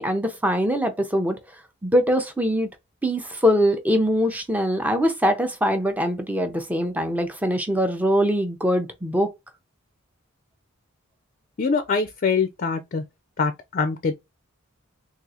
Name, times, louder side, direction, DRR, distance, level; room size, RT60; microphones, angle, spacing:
voice 1, 0.0-1.4 1.8-2.7 3.0-9.3, equal, 5° right, 0.5 m, -22 dB
voice 2, 11.6-13.0 13.4-14.1, left 5 dB, 40° left, 0.4 m, -24 dB
3.7 x 2.4 x 2.7 m
head